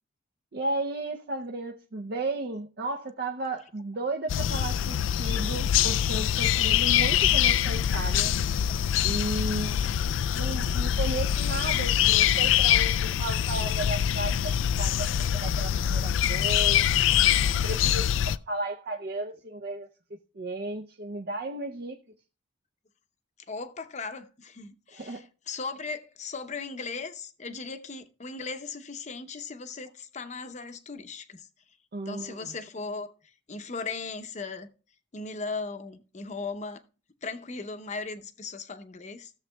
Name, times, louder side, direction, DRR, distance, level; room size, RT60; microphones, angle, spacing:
voice 1, 0.5-8.3 9.0-9.8 10.2-17.0 17.6-22.0 24.9-25.3 31.9-32.5, right 2 dB, 55° right, 0.6 m, -34 dB
sound 1, 4.3-18.4, left 10 dB, 85° left, 0.3 m, -24 dB
voice 2, 23.5-31.5 32.1-34.7 35.1-36.8 37.2-39.3, left 4 dB, 40° left, 0.7 m, -37 dB
15.5 x 7.1 x 2.2 m
head